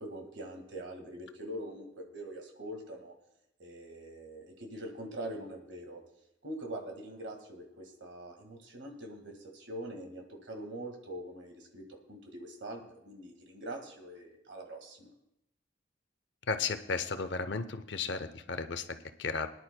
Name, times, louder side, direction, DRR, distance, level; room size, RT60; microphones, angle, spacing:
voice 1, 0.0-3.1 3.6-6.0 6.4-11.8 12.1-15.1, right 1 dB, 75° right, 3 dB, 1.8 m, -43 dB
voice 2, 16.5-19.5, left 4 dB, 70° left, 10 dB, 0.7 m, -34 dB
22.0 x 10.5 x 2.2 m, 0.81 s
head